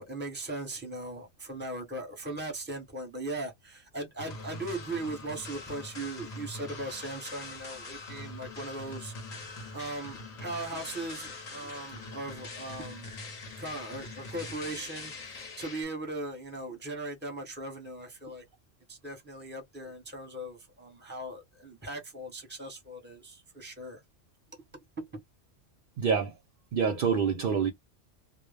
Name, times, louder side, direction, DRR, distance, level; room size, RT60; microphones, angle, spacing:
voice 1, 0.0-9.1 9.7-13.1 13.6-18.4 18.9-24.0 25.0-25.2, right 2 dB, 10° right, 0.7 m, -39 dB
sound 1, 4.2-15.8, left 3 dB, 45° left, 0.6 m, -43 dB
voice 2, 26.0-26.3 26.7-27.7, right 6 dB, 60° right, 0.6 m, -26 dB
2.0 x 2.0 x 3.2 m
omnidirectional pair, 1.2 m